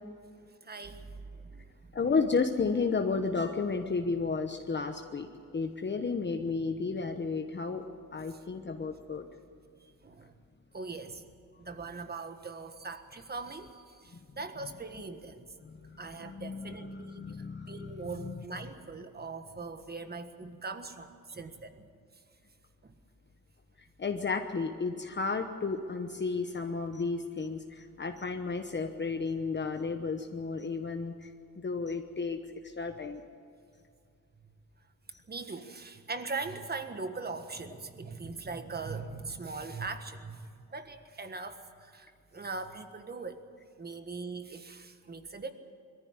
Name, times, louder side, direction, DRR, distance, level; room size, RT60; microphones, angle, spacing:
voice 1, 0.6-1.9 8.3-8.4 10.0-10.3 10.7-11.2 11.6-15.4 16.0-17.3 17.7-21.9 22.8-22.9 35.3-43.4 43.8-45.5, right 4 dB, 25° right, 8 dB, 1.5 m, -41 dB
voice 2, 1.9-5.3 5.5-7.8 8.1-9.3 15.6-18.4 24.0-31.3 31.6-33.2, left 4 dB, 30° left, 5 dB, 1.1 m, -33 dB
22.5 x 14.5 x 9.7 m, 2.3 s
cardioid pair, 130°, 37 cm